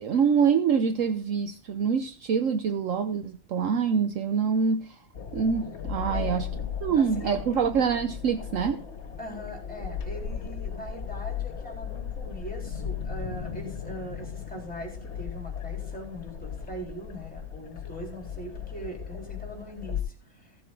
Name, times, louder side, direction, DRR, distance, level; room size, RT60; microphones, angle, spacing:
voice 1, 0.0-5.0 5.3-6.5 6.8-8.8, right 6 dB, 65° right, 1.1 m, -25 dB
sound 1, 5.1-20.0, left 8 dB, 50° left, 1.5 m, -36 dB
voice 2, 6.1-6.5 7.0-7.6 9.2-20.6, right 1 dB, 5° left, 3.8 m, -41 dB
15.5 x 7.5 x 3.8 m
omnidirectional pair, 1.6 m